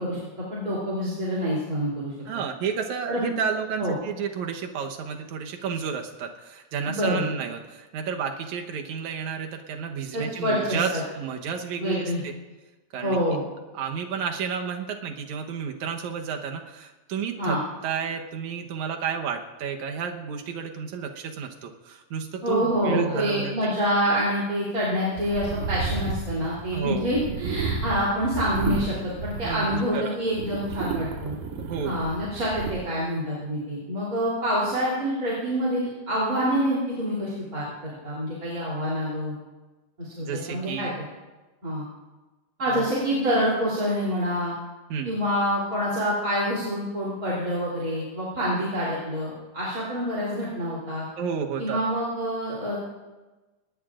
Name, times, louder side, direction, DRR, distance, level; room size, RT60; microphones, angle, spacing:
voice 1, 0.0-2.1 3.1-3.3 3.8-3.9 6.8-7.3 10.1-11.0 11.8-12.2 13.0-13.4 17.4-17.6 22.4-31.3 31.8-39.3 40.0-40.9 41.6-41.8 42.6-44.5 45.0-51.0 51.6-52.8, equal, 25° right, -7 dB, 3.4 m, -27 dB
voice 2, 2.3-12.3 12.9-13.4 13.7-17.6 17.8-23.7 26.7-27.1 29.4-30.2 31.6-32.0 40.2-40.9 42.7-42.9 44.9-45.2 51.2-51.8, right 6 dB, 70° right, 3 dB, 2.4 m, -31 dB
sound 1, 25.2-30.0 30.3-32.7, right 4 dB, 90° right, 3.2 m, -32 dB
24.0 x 19.0 x 2.5 m, 1.2 s
omnidirectional pair, 3.7 m